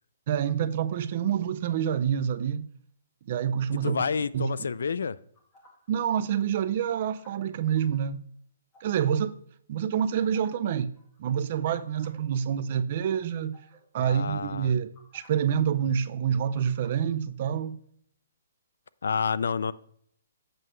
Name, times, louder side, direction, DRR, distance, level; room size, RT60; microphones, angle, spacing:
voice 1, 0.3-2.7 3.3-4.0 4.3-4.5 5.9-8.2 8.8-9.3 9.7-10.9 11.2-13.6 13.9-17.8, right 8 dB, 35° right, 0.4 m, -27 dB
voice 2, 3.8-5.2 14.0-14.7 19.0-19.7, left 5 dB, 75° left, 0.4 m, -29 dB
sound 1, 5.3-6.4 6.9-8.0 8.7-9.0 10.1-10.7 10.9-11.2 11.7-12.2 12.6-12.8 13.5-13.8 14.9-15.3 16.5-17.0, equal, 10° left, 1.6 m, -58 dB
7.6 x 6.6 x 3.1 m
hypercardioid pair, 175°, 0 cm